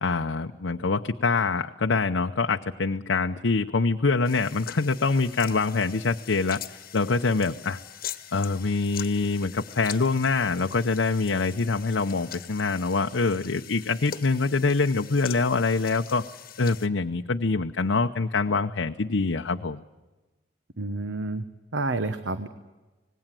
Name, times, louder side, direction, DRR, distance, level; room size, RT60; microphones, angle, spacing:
voice 1, 0.0-6.6 6.9-7.8 8.3-16.2 16.6-19.8, left 4 dB, 85° left, 5 dB, 0.8 m, -25 dB
sound 1, 4.2-16.9, left 10 dB, 50° left, 1.2 m, -42 dB
voice 2, 20.8-21.4 21.7-22.5, right 2 dB, 75° right, 10 dB, 1.1 m, -29 dB
26.0 x 19.5 x 7.6 m, 1.2 s
head